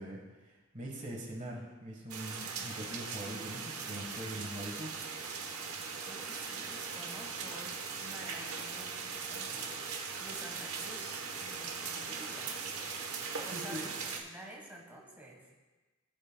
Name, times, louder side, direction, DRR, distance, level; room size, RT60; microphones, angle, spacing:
voice 1, 0.0-5.0 13.5-13.8, equal, 35° right, -1 dB, 1.3 m, -42 dB
sound 1, 2.1-14.2, right 5 dB, 80° right, 1.0 m, -40 dB
voice 2, 6.0-12.6 13.4-15.4, right 1 dB, 10° right, -2 dB, 1.3 m, -50 dB
17.5 x 6.3 x 2.2 m, 1.2 s
head